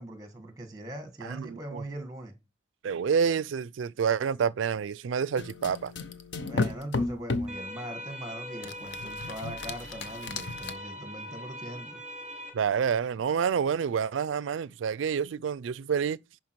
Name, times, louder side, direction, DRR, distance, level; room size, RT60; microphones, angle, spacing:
voice 1, 0.0-2.3 6.5-12.0, right 1 dB, 20° right, 1.5 m, -41 dB
voice 2, 1.2-1.8 2.8-5.9 12.5-16.2, right 7 dB, 90° right, 0.4 m, -28 dB
sound 1, 5.4-7.6 8.6-10.7, left 3 dB, 75° left, 0.8 m, -33 dB
sound 2, 7.5-12.5, equal, 5° right, 3.8 m, -41 dB
11.0 x 4.7 x 4.6 m
head